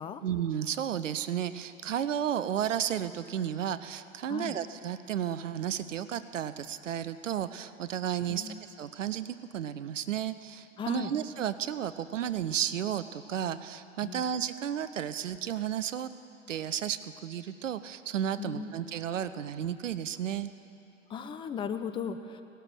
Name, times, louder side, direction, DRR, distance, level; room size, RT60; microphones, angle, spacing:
voice 1, 0.2-16.1 16.5-20.5, right 9 dB, 65° right, 13 dB, 0.7 m, -33 dB
voice 2, 8.3-8.6 10.8-11.1 14.0-14.2 18.4-18.7 21.1-22.4, left 6 dB, 10° left, 10 dB, 0.5 m, -36 dB
18.0 x 12.5 x 6.3 m, 2.8 s
figure-of-eight pair, 95°, 40 cm